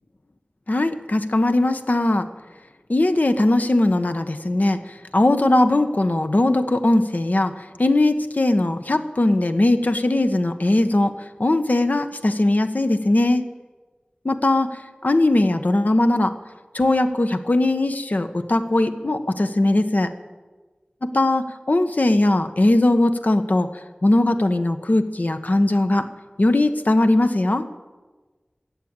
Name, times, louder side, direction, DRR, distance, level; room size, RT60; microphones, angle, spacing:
voice 1, 0.7-2.3 2.9-13.5 14.2-16.3 16.7-20.1 21.0-23.7 24.0-26.1 26.4-27.7, left 2 dB, 60° left, 8 dB, 1.0 m, -20 dB
14.0 x 8.7 x 8.9 m, 1.3 s
wide cardioid pair, 50°, 3 cm